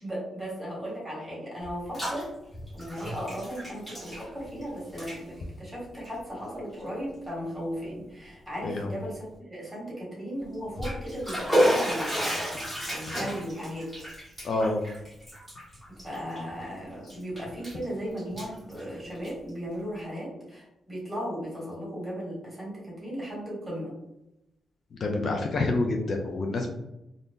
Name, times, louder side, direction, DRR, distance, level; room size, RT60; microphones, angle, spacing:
voice 1, 0.0-2.3 2.7-12.4 12.9-14.1 16.0-23.9, equal, 15° right, -5 dB, 1.4 m, -36 dB
Bathtub (filling or washing), 1.6-2.2 2.5-4.6 4.9-5.2 5.9-6.1 6.7-6.8 7.3-7.4 10.5-16.7 17.1-17.8 18.2-19.5, equal, 5° left, 1.3 m, -31 dB
voice 2, 14.4-14.8 25.0-26.7, left 2 dB, 45° left, 2 dB, 0.4 m, -27 dB
2.5 x 2.5 x 3.6 m, 0.88 s
wide cardioid pair, 145°, 0 cm